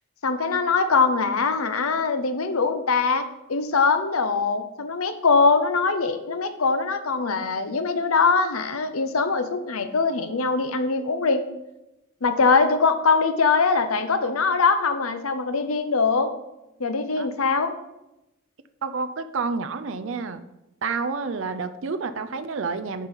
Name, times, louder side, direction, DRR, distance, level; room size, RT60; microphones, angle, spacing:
voice 1, 0.2-11.4 12.2-16.3 16.8-17.8, left 4 dB, 80° left, 9 dB, 0.8 m, -22 dB
voice 2, 18.8-20.4 20.8-23.1, right 4 dB, 60° right, 11 dB, 0.5 m, -29 dB
9.0 x 4.5 x 5.1 m, 0.93 s
head